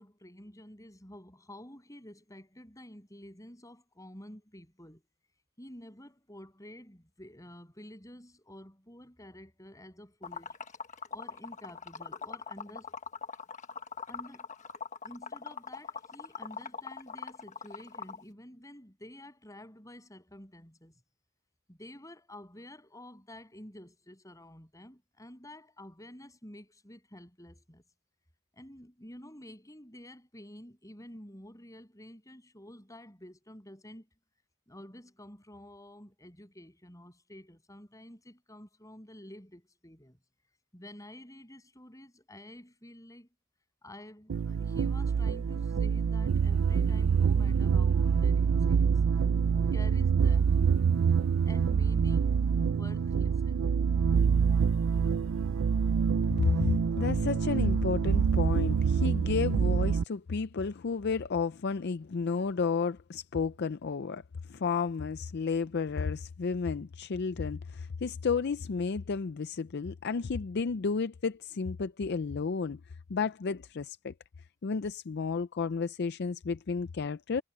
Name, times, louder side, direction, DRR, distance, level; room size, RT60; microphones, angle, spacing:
voice 1, 0.0-5.0 5.6-10.6 11.1-12.9 14.1-14.5 15.0-20.9 21.7-27.8 28.5-34.1 34.7-40.2 40.7-43.3 43.8-49.1 49.7-50.6 51.4-53.9, left 1 dB, 15° left, 8.0 m, -50 dB
Liquid, 10.2-18.2, left 5 dB, 40° left, 1.3 m, -41 dB
sound 1, 44.3-60.0, right 6 dB, 85° right, 0.4 m, -26 dB
voice 2, 56.4-64.2 64.5-72.8 73.1-74.1 74.6-77.4, left 5 dB, 55° left, 0.5 m, -32 dB
head